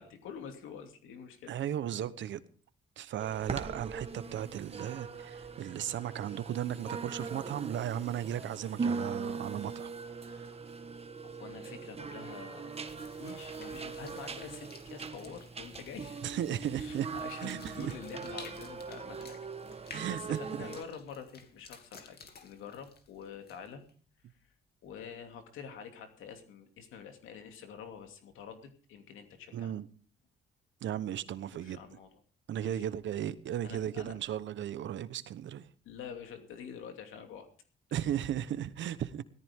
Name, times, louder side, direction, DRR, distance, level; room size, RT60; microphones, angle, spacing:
voice 1, 0.0-1.5 11.2-16.2 16.8-19.4 19.7-23.8 24.4-24.5 24.8-29.7 31.3-32.1 32.6-32.9 33.6-34.2 35.8-37.5, left 7 dB, 85° left, 2.8 m, -47 dB
voice 2, 1.5-2.4 3.0-9.9 10.2-10.6 16.2-17.1 17.4-17.9 19.9-20.6 29.5-29.9 30.8-31.8 32.5-35.7 37.9-39.2, right 10 dB, 70° right, 1.1 m, -36 dB
sound 1, 3.2-20.8, right 5 dB, 30° right, 1.5 m, -41 dB
sound 2, 12.7-23.9, left 5 dB, 55° left, 2.5 m, -54 dB
17.5 x 14.0 x 3.7 m
cardioid pair, 90°, 20 cm